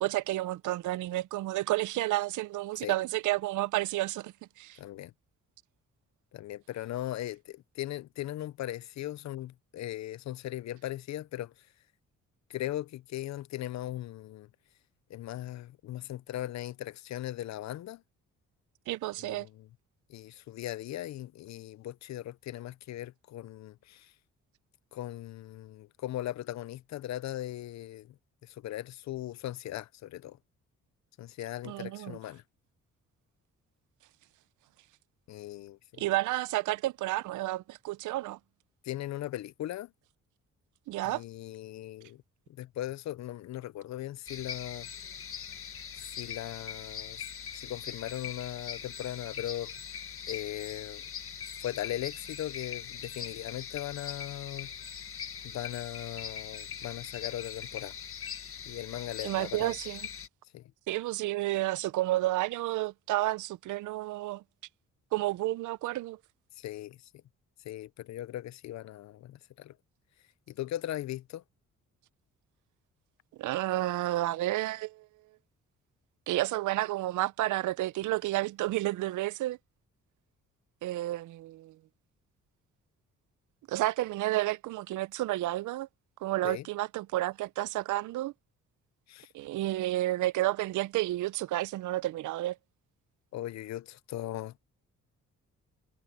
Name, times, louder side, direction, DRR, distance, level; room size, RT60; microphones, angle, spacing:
voice 1, 0.0-4.8 18.9-19.5 31.6-32.2 36.0-38.4 40.9-41.2 59.2-60.0 60.9-64.4 65.1-66.2 73.4-75.1 76.3-79.6 80.8-81.8 83.7-85.9 86.2-88.3 89.3-92.6, right 16 dB, 80° right, 0.6 m, -31 dB
voice 2, 4.8-5.1 6.3-11.5 12.5-14.5 15.1-18.0 19.2-19.7 20.1-24.1 24.9-28.1 28.4-30.4 31.2-32.4 35.3-36.0 38.8-39.9 41.0-42.2 42.6-44.9 46.0-47.2 47.6-49.7 50.3-51.0 51.6-54.7 55.4-57.9 58.7-59.7 60.5-60.7 66.6-67.0 67.6-69.7 70.5-71.4 86.4-86.6 89.1-89.3 93.3-94.6, left 13 dB, 65° left, 0.6 m, -38 dB
sound 1, 44.3-60.3, left 8 dB, 45° left, 1.7 m, -41 dB
cardioid pair, 90°, 30 cm